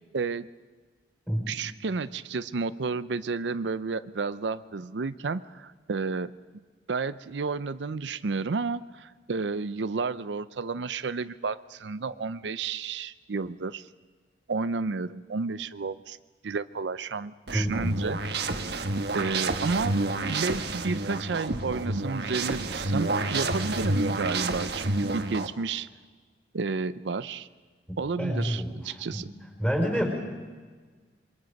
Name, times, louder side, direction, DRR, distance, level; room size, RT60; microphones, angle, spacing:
voice 1, 0.1-0.5 1.5-6.3 6.9-13.9 14.5-16.2 16.4-18.2 19.1-20.0 20.3-25.9 26.5-27.5 28.0-29.3, right 4 dB, 80° right, 14 dB, 0.6 m, -31 dB
voice 2, 17.5-18.0 28.2-29.2 29.6-30.1, equal, 10° left, 2 dB, 5.3 m, -28 dB
sound 1, 17.5-25.5, right 2 dB, 65° right, 1.4 m, -29 dB
27.0 x 23.0 x 5.3 m, 1.4 s
head